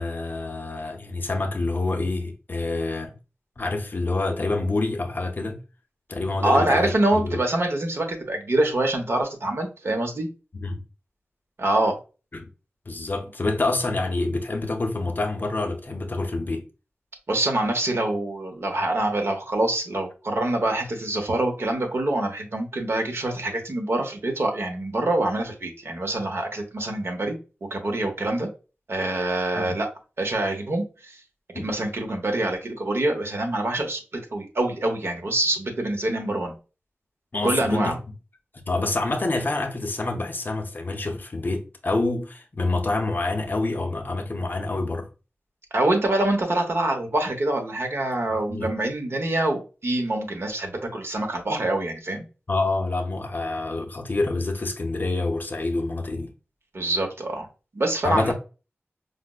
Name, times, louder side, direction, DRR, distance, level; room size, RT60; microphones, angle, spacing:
voice 1, 0.0-3.1 3.6-5.6 6.1-7.4 10.5-10.8 12.3-12.4 12.9-16.6 29.6-29.8 31.5-31.7 37.3-38.0 38.7-45.1 48.5-48.7 52.5-56.3 58.0-58.3, left 2 dB, 45° left, 0.6 m, -27 dB
voice 2, 6.4-10.3 11.6-12.0 17.3-27.4 27.7-28.5 28.9-29.9 30.2-31.2 31.5-36.5 37.4-38.0 45.7-52.2 56.7-57.5 57.7-58.3, right 1 dB, 65° right, 0.8 m, -25 dB
4.9 x 2.0 x 2.2 m
wide cardioid pair, 85°, 5 cm